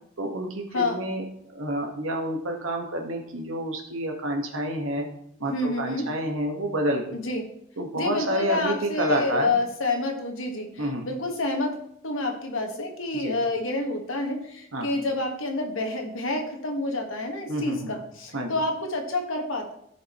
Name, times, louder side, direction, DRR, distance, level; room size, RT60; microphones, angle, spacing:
voice 1, 0.2-1.2 1.5-5.1 5.4-7.2 7.8-9.5 10.8-11.1 13.1-13.4 14.7-14.9 17.5-17.9 18.3-18.6, right 1 dB, 75° right, 2 dB, 1.5 m, -29 dB
voice 2, 5.4-6.1 7.1-7.4 8.0-11.8 12.0-19.7, left 2 dB, 75° left, 2 dB, 1.6 m, -28 dB
14.5 x 5.1 x 3.1 m, 0.74 s
head